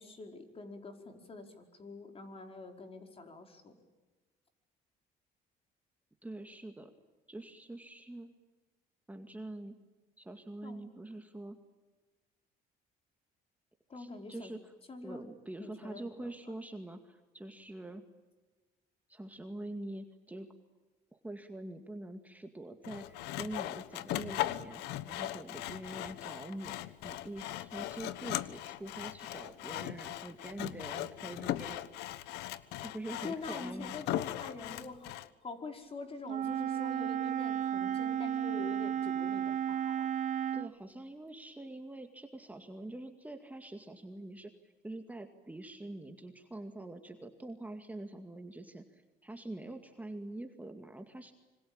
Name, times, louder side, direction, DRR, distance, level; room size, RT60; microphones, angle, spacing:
voice 1, 0.0-3.7 10.6-10.8 13.9-14.5 14.9-15.2 15.6-16.3 33.2-40.1, left 3 dB, 35° left, 5 dB, 5.0 m, -45 dB
voice 2, 6.2-6.9 7.3-8.3 9.1-9.8 10.2-11.6 13.9-14.7 15.0-18.0 19.1-20.5 21.1-31.9 32.8-34.0 40.5-44.5 44.8-51.3, right 1 dB, 10° right, 5 dB, 2.2 m, -45 dB
Sawing, 22.8-35.3, left 14 dB, 90° left, 1.2 m, -39 dB
Wind instrument woodwind instrument, 36.2-40.7, right 9 dB, 45° right, 1.0 m, -33 dB
26.0 x 25.0 x 8.9 m, 1.2 s
cardioid pair, 110°, 17 cm